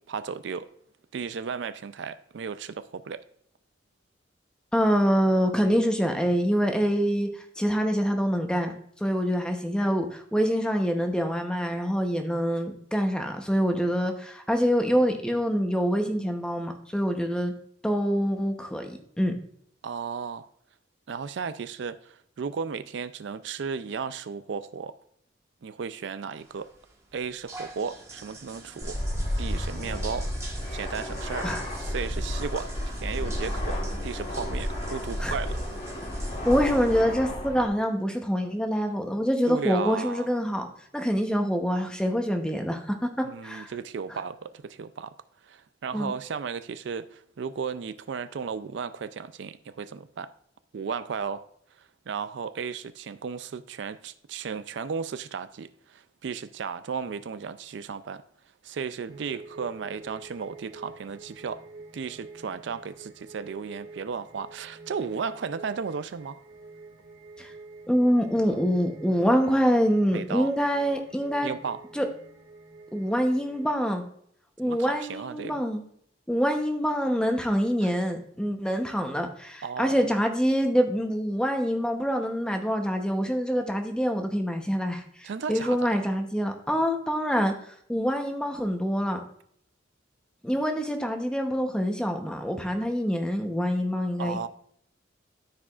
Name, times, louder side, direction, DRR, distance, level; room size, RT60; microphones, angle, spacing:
voice 1, 0.1-0.7 1.1-3.2 19.8-20.5 21.1-24.9 25.6-26.7 27.1-29.0 29.4-30.3 30.7-32.7 33.0-35.6 39.4-40.3 43.2-45.1 45.4-50.3 50.7-51.4 51.8-58.2 58.6-61.6 61.9-66.4 70.1-70.5 71.4-71.8 74.6-75.6 77.8-77.9 79.6-80.1 85.2-86.1 94.2-94.5, right 6 dB, 65° right, 0.4 m, -35 dB
voice 2, 4.7-8.7 9.0-17.5 17.8-19.3 31.4-31.6 35.2-35.3 36.4-40.7 40.9-43.7 45.9-46.1 67.4-67.5 67.9-71.5 71.9-72.1 72.9-74.0 74.6-75.8 76.3-87.5 87.9-89.2 90.4-94.5, equal, 5° left, 0.8 m, -25 dB
sound 1, 26.4-37.0, right 2 dB, 15° right, 1.5 m, -45 dB
Fixed-wing aircraft airplane, 28.8-37.7, equal, 35° left, 1.3 m, -32 dB
sound 2, 59.1-73.7, right 3 dB, 45° right, 2.1 m, -47 dB
13.5 x 4.8 x 2.4 m
head